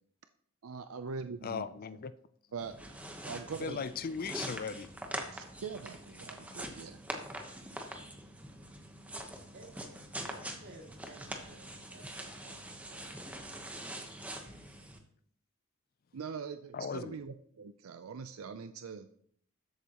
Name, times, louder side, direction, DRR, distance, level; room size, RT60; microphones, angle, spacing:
voice 1, 0.6-1.7 2.5-2.7 3.2-3.8 5.2-7.0 16.1-19.1, right 5 dB, 80° right, 0.5 m, -42 dB
voice 2, 1.4-2.1 3.6-4.9 16.7-17.2, left 5 dB, 45° left, 0.4 m, -37 dB
sound 1, 2.6-15.0, right 1 dB, 5° right, 1.0 m, -44 dB
voice 3, 9.5-13.9, right 2 dB, 55° right, 2.4 m, -56 dB
13.0 x 8.0 x 3.0 m
head